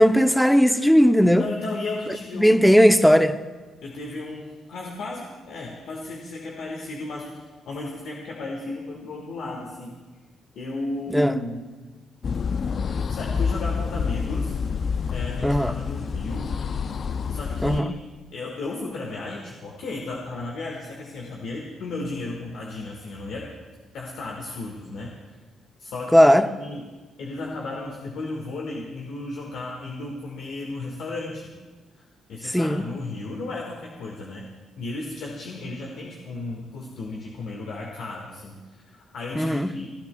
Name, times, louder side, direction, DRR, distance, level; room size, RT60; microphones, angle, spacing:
voice 1, 0.0-1.5 2.4-3.4 11.1-11.3 15.4-15.7 17.6-17.9 26.1-26.5 32.5-32.8 39.4-39.7, equal, ahead, 0.7 m, -17 dB
voice 2, 1.4-2.7 3.8-10.0 10.6-11.7 13.1-14.6 15.1-16.5 17.3-17.9 18.3-23.5 23.9-25.1 25.8-26.9 27.2-31.5 32.0-32.1 32.3-34.5 34.8-39.9, left 2 dB, 75° left, 1.7 m, -34 dB
sound 1, 12.2-17.8, left 6 dB, 50° left, 0.4 m, -28 dB
29.5 x 12.0 x 2.3 m
cardioid pair, 90°, 0 cm